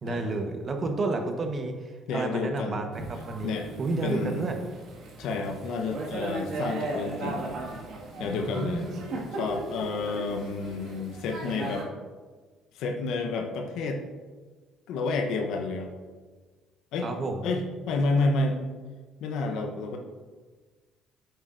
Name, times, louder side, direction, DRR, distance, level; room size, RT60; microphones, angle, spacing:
voice 1, 0.0-4.5 8.2-9.2 17.0-17.5, right 3 dB, 40° right, 4 dB, 1.1 m, -31 dB
voice 2, 2.1-2.8 3.4-4.5 5.2-7.6 8.2-8.8 9.3-11.9 12.7-14.0 14.9-15.9 16.9-17.1 17.4-18.6 19.2-20.0, left 3 dB, 75° left, 3 dB, 0.9 m, -30 dB
Thunder / Rain, 2.9-11.8, right 2 dB, 65° right, 1.8 m, -37 dB
8.9 x 7.9 x 2.6 m, 1.4 s
supercardioid pair, 80°, 0 cm